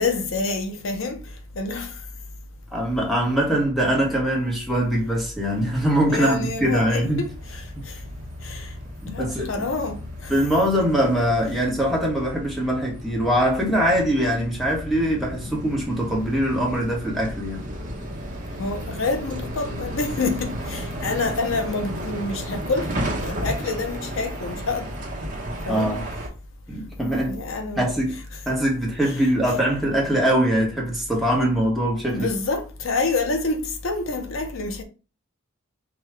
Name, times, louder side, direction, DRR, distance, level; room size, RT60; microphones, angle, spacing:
voice 1, 0.0-2.0 6.1-8.0 8.4-8.8 9.1-10.3 18.6-25.0 25.7-26.0 27.3-27.8 29.0-29.2 32.1-34.8, left 3 dB, 70° left, 0.7 m, -27 dB
voice 2, 2.7-7.2 7.7-7.8 9.0-9.6 10.3-17.6 25.7-26.0 26.7-27.4 27.8-28.2 28.5-32.3, equal, ahead, 1.1 m, -22 dB
sound 1, 6.4-26.3, equal, 40° right, 1.1 m, -34 dB
5.0 x 2.3 x 3.3 m
head